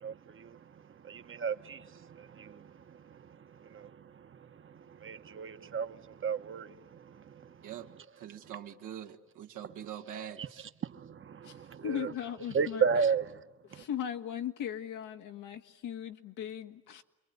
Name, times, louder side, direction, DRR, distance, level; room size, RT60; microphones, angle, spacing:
voice 1, 0.0-7.7 10.4-10.5 10.8-12.1 12.5-13.4 13.7-13.8, right 6 dB, 40° right, 1.2 m, -35 dB
voice 2, 8.2-10.6, right 10 dB, 85° right, 2.0 m, -44 dB
voice 3, 11.8-12.8 13.7-17.0, left 9 dB, 85° left, 1.8 m, -38 dB
28.0 x 22.5 x 9.4 m
cardioid pair, 90°, 30 cm